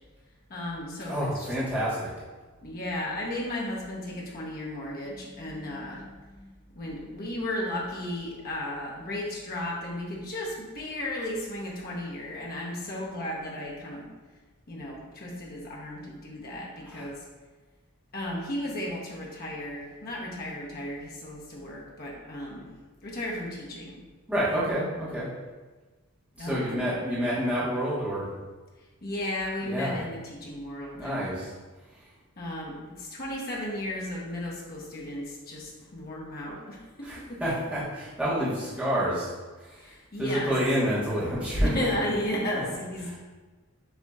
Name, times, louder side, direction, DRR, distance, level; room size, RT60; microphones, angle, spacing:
voice 1, 0.5-1.5 2.6-14.1 14.7-17.3 18.1-22.7 23.0-24.0 26.4-26.8 29.0-31.3 32.4-37.6 39.7-40.5 41.6-43.2, left 1 dB, 45° left, -4 dB, 0.9 m, -34 dB
voice 2, 1.1-2.1 16.9-17.0 24.3-25.3 26.4-28.2 29.6-30.0 31.0-31.5 37.0-39.3 39.6-39.7 40.2-41.7, equal, 5° right, -10 dB, 1.2 m, -28 dB
6.7 x 2.9 x 2.4 m, 1.3 s
head